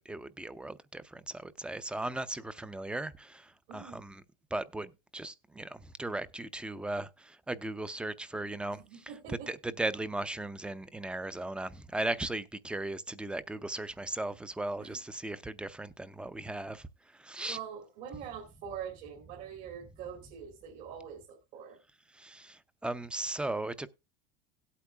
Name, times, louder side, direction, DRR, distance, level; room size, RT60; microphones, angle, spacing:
voice 1, 0.0-4.2 4.5-17.6 22.1-23.9, right 2 dB, 5° right, 0.6 m, -37 dB
voice 2, 3.7-4.0 8.7-9.5 14.8-15.0 17.5-21.8, right 8 dB, 60° right, 2.6 m, -44 dB
17.5 x 8.4 x 2.3 m
supercardioid pair, 135°, 17 cm